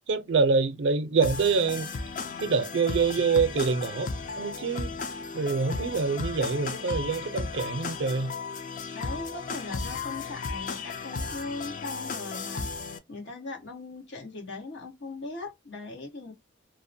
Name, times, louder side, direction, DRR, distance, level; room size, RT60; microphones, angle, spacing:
voice 1, 0.1-1.9 2.4-4.1 4.4-4.9 5.3-8.3, right 4 dB, 75° right, 0.5 m, -25 dB
sound 1, 1.2-13.0, left 4 dB, 45° left, 0.4 m, -35 dB
voice 2, 8.9-12.7 13.1-16.3, left 3 dB, 90° left, 1.2 m, -39 dB
2.7 x 2.1 x 2.6 m
head